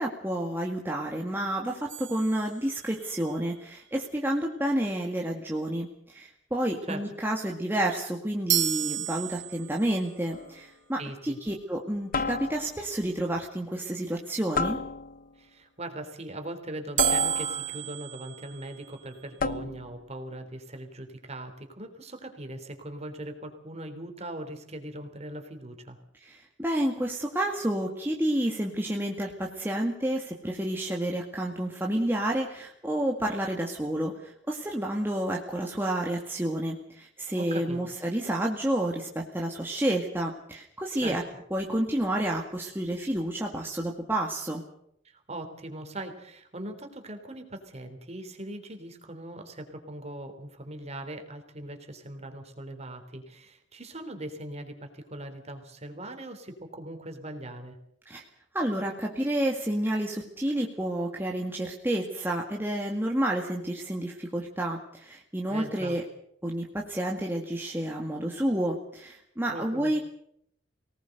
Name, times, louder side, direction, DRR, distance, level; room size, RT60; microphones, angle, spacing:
voice 1, 0.0-14.8 26.2-41.2 41.5-44.6 58.1-58.2 58.5-66.0 66.4-70.0, right 1 dB, 10° right, -1 dB, 1.9 m, -30 dB
sound 1, 1.9-3.2 8.5-10.0 17.0-19.1, right 14 dB, 75° right, 1.3 m, -31 dB
sound 2, 10.3-10.7 12.1-12.9 14.6-15.4 17.0-17.9 19.4-20.0, left 4 dB, 50° left, 0.9 m, -31 dB
voice 2, 11.0-11.4 15.4-26.0 37.4-37.8 41.0-41.2 45.0-57.8 65.5-66.0 69.5-70.0, right 1 dB, 35° right, 6 dB, 3.6 m, -40 dB
24.5 x 19.0 x 6.7 m, 0.72 s
head